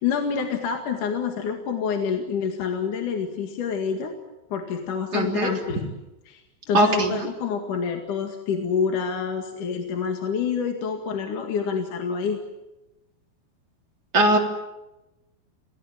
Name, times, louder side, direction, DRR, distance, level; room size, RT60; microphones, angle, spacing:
voice 1, 0.0-4.1 4.5-5.9 6.3-12.4, left 6 dB, 50° left, 4 dB, 3.0 m, -27 dB
voice 2, 5.1-5.5 6.7-7.3 14.1-14.4, right 1 dB, 25° right, 1 dB, 3.4 m, -20 dB
28.0 x 19.0 x 9.9 m, 1.0 s
omnidirectional pair, 5.3 m